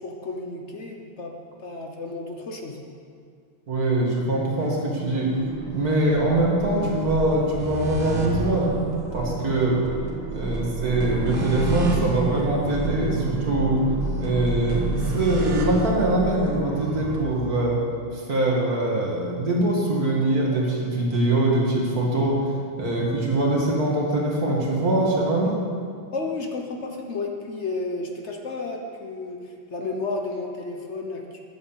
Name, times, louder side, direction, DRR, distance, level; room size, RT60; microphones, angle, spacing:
voice 1, 0.0-1.3 1.6-2.8 26.1-31.4, left 3 dB, 45° left, 2 dB, 0.9 m, -32 dB
voice 2, 3.7-5.3 5.7-8.7 9.1-9.8 10.3-13.8 14.2-17.8 18.1-22.5 22.8-25.5, right 2 dB, 45° right, -3 dB, 2.4 m, -23 dB
sound 1, 4.6-17.2, right 2 dB, 60° right, 2.3 m, -29 dB
9.8 x 8.0 x 7.2 m, 2.1 s
omnidirectional pair, 2.4 m